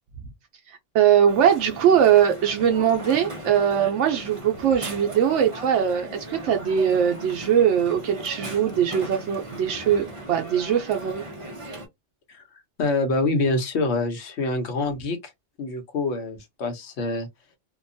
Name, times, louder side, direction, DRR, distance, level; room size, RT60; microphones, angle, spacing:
voice 1, 0.7-11.2, right 9 dB, 75° right, 0.9 m, -21 dB
Crowd, 1.3-11.9, right 1 dB, 30° right, 0.7 m, -38 dB
voice 2, 12.8-15.2 15.6-17.3, left 3 dB, 65° left, 1.1 m, -25 dB
2.8 x 2.2 x 2.6 m
omnidirectional pair, 1.2 m